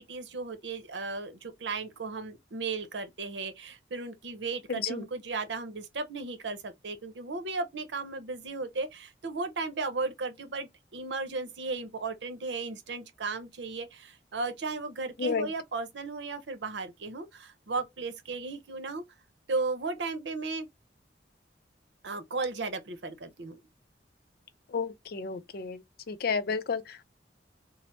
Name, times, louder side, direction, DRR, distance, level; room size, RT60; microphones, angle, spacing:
voice 1, 0.0-19.0 19.5-20.7 22.0-23.6, right 3 dB, 80° right, 0.7 m, -35 dB
voice 2, 4.7-5.0 15.2-15.5 24.7-25.8 26.1-27.1, left 5 dB, 55° left, 0.4 m, -31 dB
3.1 x 2.0 x 2.8 m
head